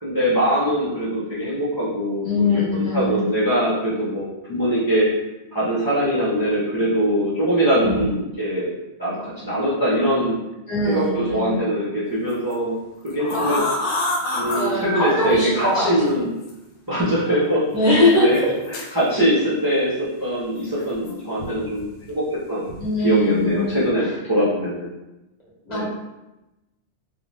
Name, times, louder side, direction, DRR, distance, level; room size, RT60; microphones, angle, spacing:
voice 1, 0.0-5.1 5.5-10.4 10.9-12.8 13.1-13.6 14.3-16.3 16.9-17.7 18.2-18.4 18.9-22.7 23.0-24.9 25.7-25.8, equal, 25° right, -10 dB, 0.6 m, -22 dB
voice 2, 2.2-3.2 7.8-8.0 10.7-11.6 13.3-13.7 14.5-15.9 17.7-18.5 22.8-23.7 25.6-25.8, left 1 dB, 40° left, -8 dB, 1.0 m, -21 dB
sound 1, 12.3-12.5 13.1-15.2 16.4-16.5 17.3-17.4 18.3-18.9 20.8-21.5 21.8-22.1 22.7-22.9 23.3-23.7, left 1 dB, 75° left, 0.9 m, -27 dB
2.6 x 2.3 x 3.2 m, 0.98 s
omnidirectional pair, 1.2 m